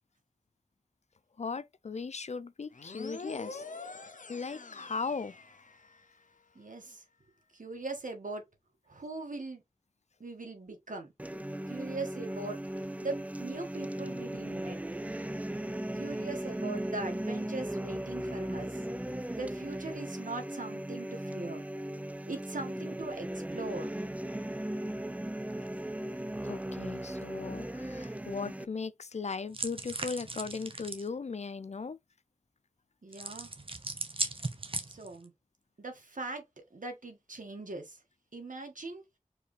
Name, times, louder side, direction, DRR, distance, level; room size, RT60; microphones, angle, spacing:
voice 1, 1.4-3.6 4.3-5.4 26.4-32.0, left 4 dB, 55° left, 0.4 m, -38 dB
sound 1, 2.7-6.2, left 3 dB, 70° left, 0.7 m, -45 dB
voice 2, 6.5-7.0 7.5-8.4 8.9-9.6 10.2-11.1 11.7-12.6 13.0-14.8 15.9-18.8 19.3-21.6 22.2-24.0 33.0-33.5 34.9-35.3 35.8-38.0 38.3-39.0, right 3 dB, 75° right, 1.6 m, -40 dB
sound 2, 11.2-28.6, right 1 dB, 10° right, 0.4 m, -37 dB
sound 3, 29.5-31.1 33.1-35.2, right 2 dB, 40° right, 0.9 m, -37 dB
4.7 x 3.3 x 3.2 m
wide cardioid pair, 60°, 14 cm